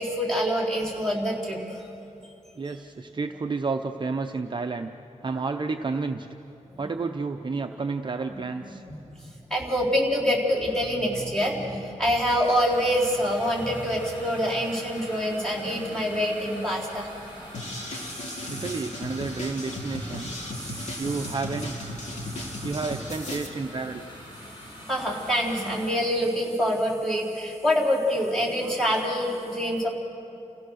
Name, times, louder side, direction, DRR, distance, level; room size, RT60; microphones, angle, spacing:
voice 1, 0.0-1.9 6.7-6.9 9.1-17.1 17.6-18.6 20.5-21.1 22.3-22.6 24.9-29.9, equal, 5° left, -5 dB, 4.1 m, -26 dB
voice 2, 2.6-4.9 5.2-6.3 6.8-8.8 18.5-20.3 21.0-21.9 22.6-24.0, right 4 dB, 35° right, 4 dB, 0.7 m, -31 dB
sound 1, 12.4-25.9, equal, 35° left, 7.0 m, -44 dB
sound 2, 17.5-23.5, left 1 dB, 60° left, 2.7 m, -36 dB
29.5 x 16.5 x 6.4 m, 2.8 s
wide cardioid pair, 125°, 13 cm